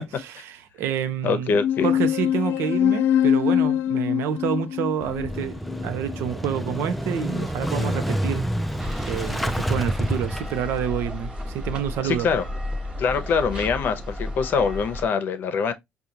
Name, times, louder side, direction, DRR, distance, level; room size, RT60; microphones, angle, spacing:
voice 1, 0.0-1.6 1.8-8.4 9.0-12.3, right 9 dB, 80° right, 0.7 m, -28 dB
voice 2, 1.2-1.9 12.0-12.4 13.0-15.7, left 5 dB, 55° left, 0.7 m, -24 dB
sound 1, 1.6-6.5, left 10 dB, 75° left, 0.4 m, -23 dB
Motorcycle / Engine starting, 5.0-10.9, equal, ahead, 0.4 m, -28 dB
sound 2, 8.8-15.1, left 1 dB, 20° right, 1.1 m, -33 dB
5.1 x 2.3 x 2.8 m
cardioid pair, 135°, 4 cm